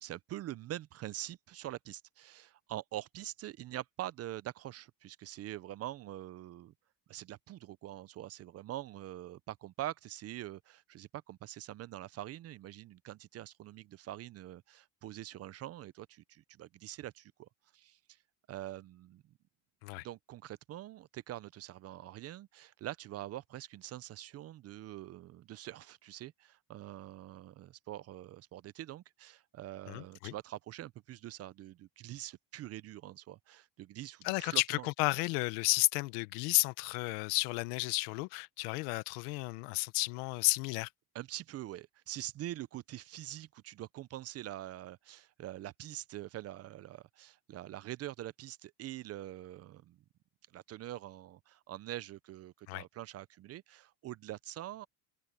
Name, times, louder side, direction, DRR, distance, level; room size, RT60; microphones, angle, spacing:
voice 1, 0.0-6.7 7.1-17.5 17.7-18.0 18.5-19.2 20.0-34.9 41.1-50.0 50.5-54.9, right 14 dB, 35° right, 0.4 m, -44 dB
voice 2, 29.9-30.3 34.2-40.9 52.7-52.8, left 24 dB, 90° left, 1.0 m, -32 dB
cardioid pair, 135°, 45 cm